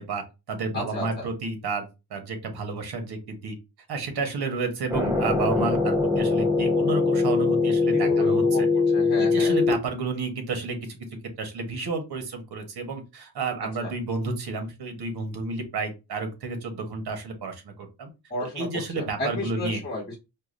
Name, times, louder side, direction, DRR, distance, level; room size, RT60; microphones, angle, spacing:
voice 1, 0.0-3.6 3.9-8.7 9.2-11.0 11.4-18.1 18.5-19.8, right 3 dB, 70° right, 6 dB, 1.1 m, -31 dB
voice 2, 0.7-1.3 7.9-9.6 13.8-13.9 18.3-18.7 18.9-20.2, left 1 dB, 25° left, -2 dB, 1.0 m, -33 dB
sound 1, 4.9-9.7, left 3 dB, 5° right, 0.4 m, -22 dB
4.7 x 2.3 x 2.5 m, 0.26 s
wide cardioid pair, 140°, 41 cm